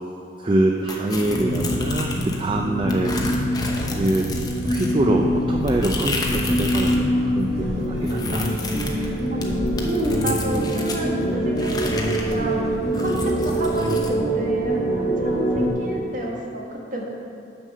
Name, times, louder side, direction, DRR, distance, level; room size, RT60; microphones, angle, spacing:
voice 1, 0.4-3.4 4.0-4.3 4.7-8.5, right 1 dB, 30° right, 1 dB, 0.4 m, -24 dB
sound 1, 0.9-2.5 2.9-7.0 7.3-11.0 11.6-14.1, left 2 dB, 20° left, 0.7 m, -31 dB
sound 2, 1.3-15.7, equal, 65° left, 1.8 m, -24 dB
voice 2, 2.9-3.3 9.3-12.6 13.0-17.1, right 1 dB, 45° right, -2 dB, 1.3 m, -30 dB
sound 3, 3.3-13.4, equal, 65° right, 1.0 m, -39 dB
6.4 x 5.3 x 6.6 m, 2.7 s
head